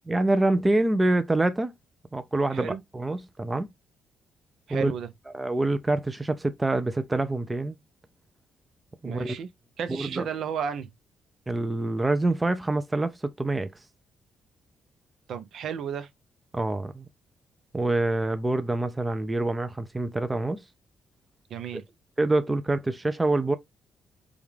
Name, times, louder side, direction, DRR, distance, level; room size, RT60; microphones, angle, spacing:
voice 1, 0.1-1.7 2.1-3.7 4.7-4.9 5.3-7.8 9.0-9.4 9.9-10.3 11.5-13.7 16.5-17.1 17.7-20.6 22.2-23.6, right 2 dB, 15° right, 0.5 m, -26 dB
voice 2, 4.7-5.1 9.0-9.5 9.8-10.9 15.3-16.1 21.5-21.8, right 7 dB, 70° right, 0.6 m, -33 dB
5.1 x 2.4 x 3.2 m
cardioid pair, 115°, 0 cm